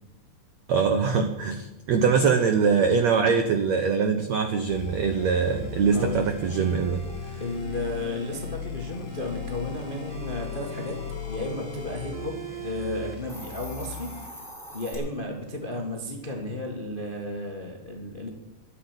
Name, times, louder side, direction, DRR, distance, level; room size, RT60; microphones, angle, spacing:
voice 1, 0.7-7.0, right 5 dB, 90° right, 7 dB, 1.5 m, -23 dB
sound 1, 4.6-8.6 9.1-13.1, right 2 dB, 55° right, 1.1 m, -42 dB
sound 2, 4.7-14.3, left 6 dB, 60° left, 2.7 m, -38 dB
voice 2, 5.9-6.3 7.4-11.0 11.3-14.4 14.7-18.3, left 1 dB, 85° left, 1 dB, 0.4 m, -33 dB
Hiss, 13.3-14.9, equal, ahead, 3.7 m, -42 dB
12.5 x 8.4 x 9.7 m, 0.97 s
omnidirectional pair, 4.6 m